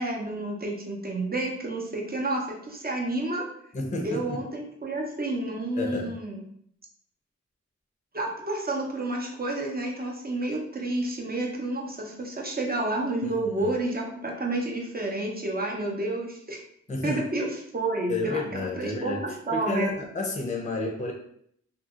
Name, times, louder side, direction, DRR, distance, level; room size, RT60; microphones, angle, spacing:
voice 1, 0.0-3.5 4.0-6.4 8.1-16.6 17.0-19.9, right 2 dB, 30° right, -1 dB, 0.7 m, -30 dB
voice 2, 3.7-4.4 5.8-6.1 13.2-13.3 13.6-13.7 16.9-17.2 18.1-19.2 19.5-21.1, left 2 dB, 25° left, 1 dB, 0.6 m, -30 dB
2.7 x 2.7 x 2.4 m, 0.68 s
wide cardioid pair, 55°, 29 cm